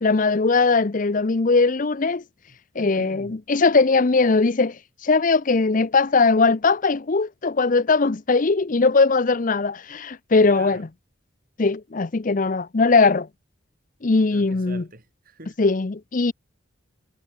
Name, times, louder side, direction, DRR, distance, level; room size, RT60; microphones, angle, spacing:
voice 1, 0.0-2.2 2.8-4.8 5.0-10.9 11.6-13.3 14.0-14.8 15.6-16.3, left 3 dB, 40° left, 0.6 m, -20 dB
voice 2, 2.5-3.4 10.5-10.8 14.3-15.6, right 2 dB, 45° right, 6.0 m, -44 dB
head